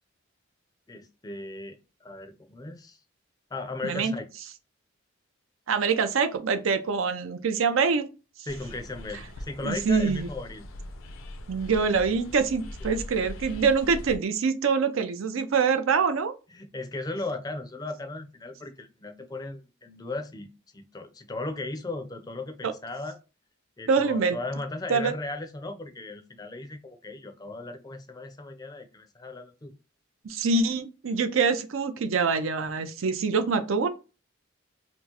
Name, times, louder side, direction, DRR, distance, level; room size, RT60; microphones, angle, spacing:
voice 1, 0.9-3.0 3.5-4.3 8.5-10.7 12.8-12.9 16.5-23.2 23.8-29.7, left 2 dB, 20° left, 0.4 m, -37 dB
voice 2, 3.8-4.1 5.7-8.1 9.6-10.3 11.5-16.3 22.6-22.7 23.9-24.4 24.9-25.1 30.2-33.9, right 5 dB, 80° right, 0.5 m, -25 dB
sound 1, 8.5-14.2, left 1 dB, 85° left, 0.6 m, -41 dB
4.3 x 2.0 x 2.9 m
head